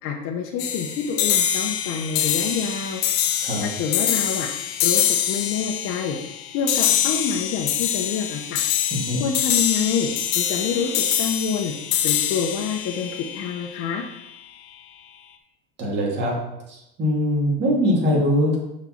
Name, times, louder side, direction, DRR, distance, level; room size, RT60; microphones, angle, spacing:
voice 1, 0.0-3.0 3.6-4.5 4.8-5.0 5.3-6.2 6.5-8.6 9.2-10.1 10.3-11.7 12.0-14.0, left 6 dB, 50° left, 0 dB, 0.9 m, -27 dB
sound 1, 0.6-14.0, left 10 dB, 75° left, 0.9 m, -24 dB
voice 2, 15.8-16.3 16.7-18.6, equal, 35° right, -3 dB, 2.4 m, -22 dB
6.3 x 4.3 x 5.8 m, 0.86 s
cardioid pair, 140°, 30 cm